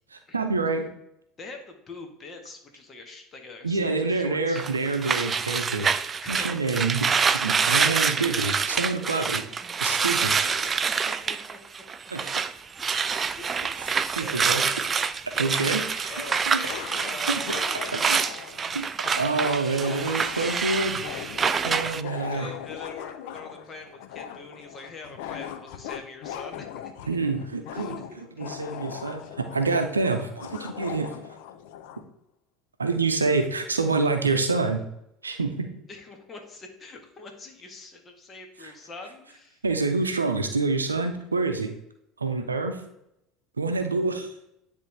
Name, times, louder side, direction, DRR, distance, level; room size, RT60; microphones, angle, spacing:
voice 1, 0.1-0.9 3.6-5.9 6.3-9.4 9.8-10.5 12.1-12.4 14.2-14.6 15.4-16.1 16.5-16.6 17.3-17.4 17.9-18.2 18.7-18.9 19.2-21.0 21.6-22.5 27.1-31.1 32.8-34.8 35.2-35.7 39.6-41.7 42.2-42.8 43.6-44.3, right 3 dB, 85° right, 6 dB, 0.6 m, -27 dB
voice 2, 1.4-4.7 6.2-6.8 10.0-10.7 11.0-11.6 12.8-14.8 16.1-18.3 22.3-27.2 27.7-27.9 28.4-29.3 35.9-39.6, left 3 dB, 30° left, 4 dB, 1.4 m, -44 dB
sound 1, 4.6-12.5 12.8-22.0, right 6 dB, 30° right, 0.3 m, -26 dB
sound 2, 15.7-15.8 16.7-32.0, left 10 dB, 65° left, 0.5 m, -39 dB
9.8 x 3.3 x 3.3 m, 0.81 s
figure-of-eight pair, 70°, 0 cm